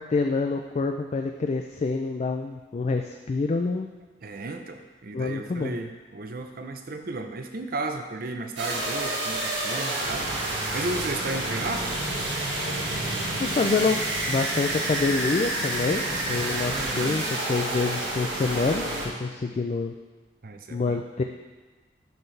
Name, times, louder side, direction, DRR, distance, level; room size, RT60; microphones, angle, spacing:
voice 1, 0.0-3.9 5.1-5.8 13.4-14.0 14.3-16.0 16.3-18.8 19.2-19.9 20.7-21.2, left 4 dB, 35° left, 4 dB, 0.3 m, -26 dB
voice 2, 4.2-10.3 10.7-11.9 16.6-17.1 20.4-21.0, right 2 dB, 55° right, 5 dB, 0.6 m, -34 dB
sound 1, 8.6-19.1, right 1 dB, 85° right, 1.7 m, -29 dB
11.5 x 4.5 x 3.3 m, 1.3 s
head